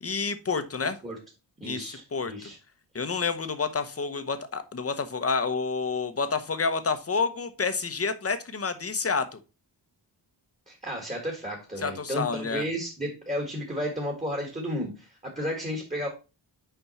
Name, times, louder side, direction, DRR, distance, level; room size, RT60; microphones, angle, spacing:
voice 1, 0.0-1.0 1.6-2.5 2.9-9.4 11.8-12.6, left 4 dB, 30° left, 10 dB, 0.8 m, -29 dB
voice 2, 1.6-2.6 10.7-16.1, equal, 15° right, 0 dB, 1.6 m, -33 dB
5.7 x 5.2 x 4.1 m, 0.31 s
wide cardioid pair, 125°, 45 cm